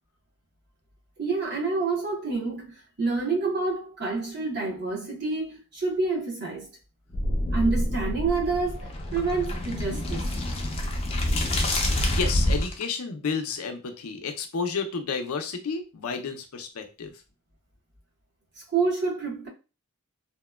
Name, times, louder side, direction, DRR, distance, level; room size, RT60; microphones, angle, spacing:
voice 1, 1.2-6.7 7.5-10.2 18.7-19.5, right 4 dB, 55° right, 0.9 m, -28 dB
sound 1, 7.1-12.8, left 1 dB, 30° left, 0.4 m, -27 dB
voice 2, 12.1-17.1, left 5 dB, 90° left, 0.5 m, -31 dB
2.8 x 2.1 x 2.2 m
head